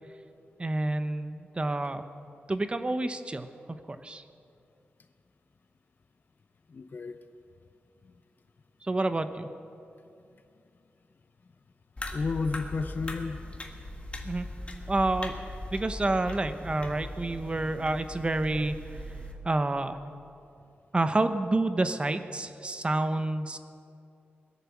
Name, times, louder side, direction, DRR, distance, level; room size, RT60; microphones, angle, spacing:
voice 1, 0.6-2.0 2.5-3.5 3.9-4.2 8.8-9.5 14.2-14.5 14.9-15.3 15.7-19.2 19.4-20.0 20.9-23.6, right 2 dB, 25° right, 9 dB, 0.9 m, -29 dB
voice 2, 6.7-7.2 8.0-8.1 12.1-13.5, left 4 dB, 50° left, 8 dB, 0.6 m, -32 dB
sound 1, 12.0-19.3, left 1 dB, 30° left, 1.7 m, -40 dB
21.5 x 8.2 x 7.2 m, 2.5 s
wide cardioid pair, 115°, 4 cm